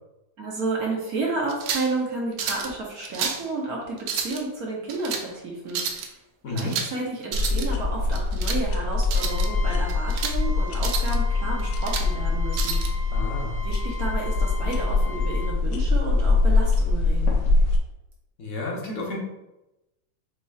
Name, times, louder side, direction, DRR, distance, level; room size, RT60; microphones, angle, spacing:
voice 1, 0.4-6.1 6.5-13.1 13.6-17.4, right 2 dB, 60° right, -2 dB, 1.2 m, -31 dB
sound 1, 1.5-1.9 2.4-2.7 3.0-3.5 4.0-4.4 4.9-5.3 5.7-6.1 6.6-7.0 7.2-7.7 8.1-8.6 9.0-9.5 9.9-10.4 10.8-11.2 11.6-12.1 12.5-12.9, right 6 dB, 90° right, 1.4 m, -30 dB
voice 2, 6.4-6.8 13.1-13.6 18.4-19.2, left 2 dB, 50° left, -2 dB, 1.1 m, -31 dB
sound 2, 7.3-17.8, left 3 dB, 80° left, 1.4 m, -23 dB
Trumpet, 9.1-15.5, left 2 dB, 25° right, 0.7 m, -40 dB
7.2 x 2.9 x 2.3 m, 0.97 s
omnidirectional pair, 2.1 m